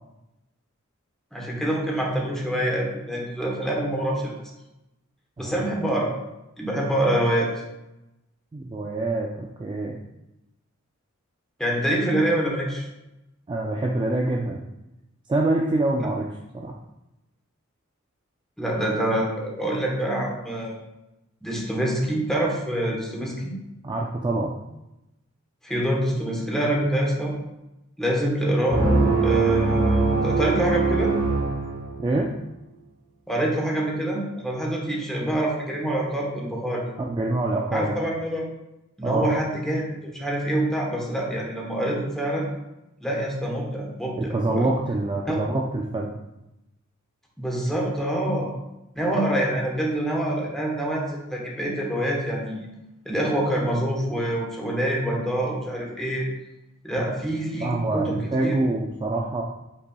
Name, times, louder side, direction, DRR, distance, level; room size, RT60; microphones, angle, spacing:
voice 1, 1.3-4.3 5.4-6.1 6.6-7.5 11.6-12.9 18.6-20.8 21.4-23.5 25.6-27.3 28.0-31.1 33.3-36.8 37.7-38.4 39.0-42.4 43.0-44.7 45.3-45.4 47.4-48.5 48.9-52.7 53.1-56.3 56.8-58.6, right 1 dB, ahead, -3 dB, 1.0 m, -26 dB
voice 2, 8.5-10.0 13.5-14.6 15.3-16.3 16.5-16.8 23.8-24.6 32.0-32.3 37.0-38.1 39.0-39.4 44.2-46.2 57.6-59.4, right 2 dB, 20° right, -1 dB, 0.3 m, -25 dB
sound 1, 28.7-32.3, right 3 dB, 90° right, 1.1 m, -22 dB
5.5 x 4.0 x 2.3 m, 0.94 s
head